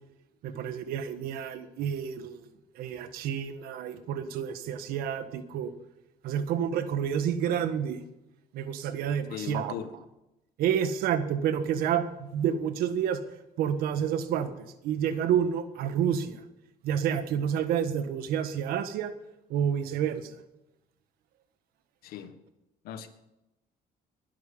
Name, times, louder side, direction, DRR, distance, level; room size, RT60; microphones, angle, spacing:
voice 1, 0.4-2.4 2.8-5.7 6.2-8.0 8.5-9.7 10.6-13.2 13.6-14.5 14.8-16.4 16.8-19.1 19.5-20.3, right 8 dB, 85° right, 10 dB, 1.5 m, -29 dB
voice 2, 9.3-9.9 22.0-22.3 22.8-23.1, left 9 dB, 85° left, 10 dB, 1.5 m, -38 dB
20.0 x 10.5 x 5.5 m, 0.94 s
cardioid pair, 140°, 15 cm